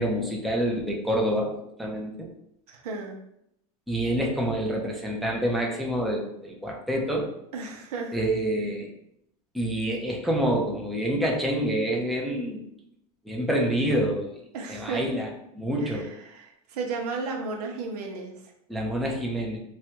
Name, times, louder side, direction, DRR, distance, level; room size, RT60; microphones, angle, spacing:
voice 1, 0.0-1.5 1.8-2.3 3.9-7.3 8.1-8.9 9.5-12.6 13.2-14.3 14.7-16.1 18.7-19.6, equal, ahead, -1 dB, 0.5 m, -27 dB
voice 2, 2.7-3.2 7.5-8.2 14.5-15.1 15.8-18.3, right 4 dB, 90° right, 2 dB, 0.7 m, -34 dB
3.1 x 2.3 x 2.9 m, 0.77 s
supercardioid pair, 120°, 19 cm